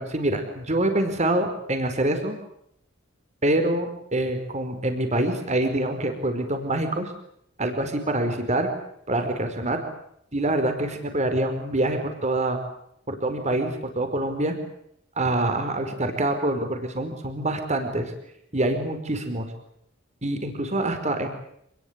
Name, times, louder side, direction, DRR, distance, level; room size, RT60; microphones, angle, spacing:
voice 1, 0.0-2.4 3.4-7.1 7.6-8.7 9.1-9.8 10.3-12.6 13.1-14.5 15.2-18.1 18.5-19.5 20.2-21.3, right 1 dB, 35° right, 7 dB, 4.9 m, -25 dB
27.5 x 21.5 x 8.3 m, 0.74 s
head